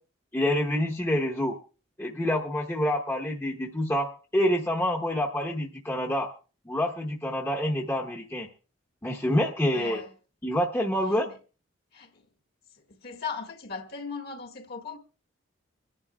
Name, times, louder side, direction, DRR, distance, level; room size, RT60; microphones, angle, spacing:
voice 1, 0.3-1.6 2.0-6.3 6.7-8.5 9.0-10.0 10.4-11.3, left 1 dB, 10° left, 0.9 m, -27 dB
voice 2, 9.7-10.1 11.1-11.4 11.9-12.3 12.7-15.0, left 5 dB, 50° left, 1.6 m, -38 dB
25.0 x 11.0 x 2.3 m
head